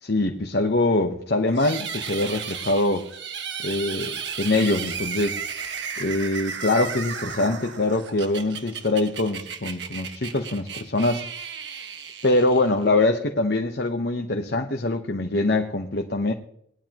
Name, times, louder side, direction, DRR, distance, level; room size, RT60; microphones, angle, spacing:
voice 1, 0.0-3.1 3.6-5.4 6.0-11.2 12.2-16.3, left 2 dB, 60° left, 1.1 m, -23 dB
sound 1, 1.5-12.9, right 6 dB, 70° right, 1.6 m, -34 dB
20.0 x 11.0 x 3.0 m
head